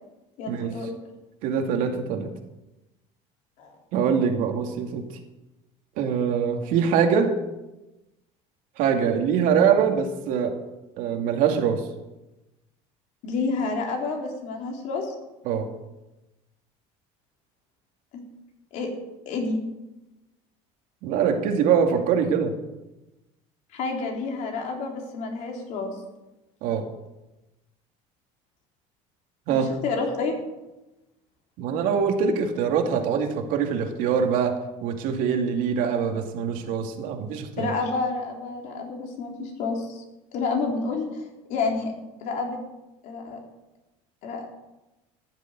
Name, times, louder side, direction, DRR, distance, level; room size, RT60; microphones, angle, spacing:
voice 1, 0.4-0.9 3.6-3.7 13.2-15.1 18.1-18.2 18.7-18.9 19.3-19.6 23.7-25.9 29.5-30.4 37.6-40.0 40.3-41.2 41.5-41.9 42.2-42.6 43.0-43.4 44.2-44.5, left 4 dB, 55° left, 1 dB, 3.9 m, -29 dB
voice 2, 1.4-2.3 3.9-5.1 6.0-7.4 8.8-10.5 11.0-11.9 15.5-15.7 21.0-22.6 26.6-26.9 29.5-29.7 31.6-37.7, right 7 dB, 65° right, 4 dB, 2.4 m, -23 dB
15.0 x 7.4 x 9.2 m, 1.0 s
cardioid pair, 140°, 15 cm